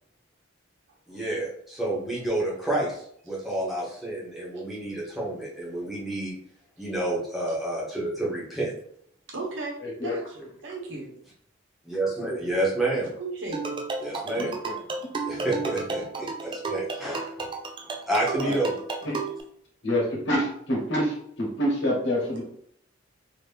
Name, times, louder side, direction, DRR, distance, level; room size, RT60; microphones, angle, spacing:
voice 1, 1.1-6.4 6.8-8.7 11.8-13.1 14.0-14.6 15.2-17.5 18.1-18.8, right 1 dB, ahead, -6 dB, 1.0 m, -29 dB
voice 2, 9.3-9.8 10.0-11.1 13.2-13.9, right 3 dB, 70° right, -2 dB, 1.0 m, -36 dB
voice 3, 9.8-10.1 14.4-14.7 18.4-18.5 19.0-19.2 19.8-22.4, equal, 65° left, -2 dB, 1.2 m, -27 dB
sound 1, 13.5-19.4, right 3 dB, 25° right, 0.3 m, -33 dB
2.9 x 2.7 x 3.4 m, 0.66 s
head